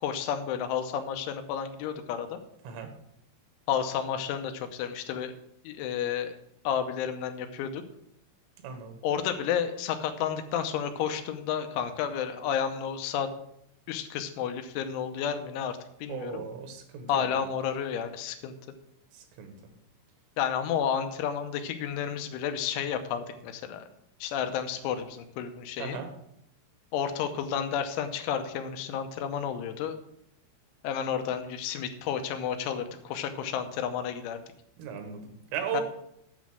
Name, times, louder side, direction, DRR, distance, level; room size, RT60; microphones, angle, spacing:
voice 1, 0.0-2.4 3.7-5.3 5.7-6.4 6.6-7.8 9.0-13.3 13.9-16.4 17.1-18.5 20.4-23.9 24.2-26.0 26.9-30.0 30.8-34.4 35.7-35.8, left 8 dB, 80° left, 8 dB, 3.2 m, -31 dB
voice 2, 8.6-9.0 16.1-17.4 19.2-19.5 25.8-26.1 34.8-35.8, right 7 dB, 90° right, 6 dB, 4.0 m, -36 dB
9.4 x 6.2 x 6.1 m, 0.75 s
omnidirectional pair, 5.6 m